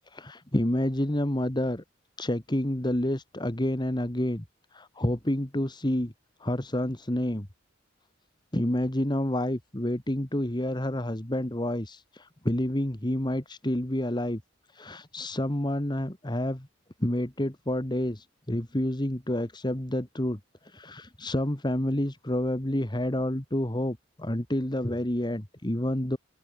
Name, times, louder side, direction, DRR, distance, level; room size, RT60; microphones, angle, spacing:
voice 1, 0.0-1.8 2.2-4.4 4.7-6.1 6.4-7.5 8.5-14.4 14.7-16.7 17.0-26.2, left 1 dB, 25° left, 1.9 m, -29 dB
open air
head